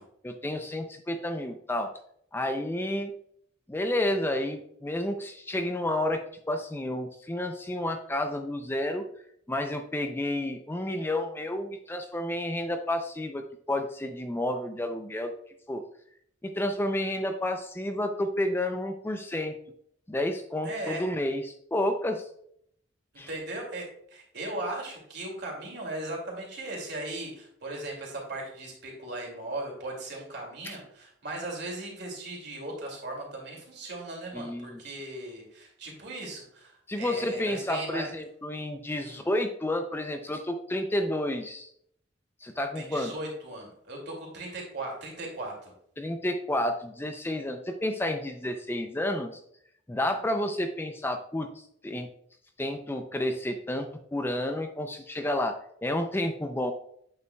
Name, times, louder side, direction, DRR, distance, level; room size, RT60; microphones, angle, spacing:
voice 1, 0.2-1.9 2.3-3.1 3.7-9.1 9.5-15.3 15.7-15.8 16.4-19.6 20.1-22.3 23.2-23.3 30.6-30.8 34.3-34.8 36.9-41.7 42.4-43.1 46.0-49.3 49.9-52.1 52.6-56.7, left 1 dB, 10° left, 6 dB, 0.4 m, -30 dB
voice 2, 20.6-21.0 23.3-38.1 39.0-39.2 42.7-45.7, right 2 dB, 60° right, -1 dB, 2.5 m, -38 dB
8.2 x 6.9 x 2.3 m, 0.69 s
head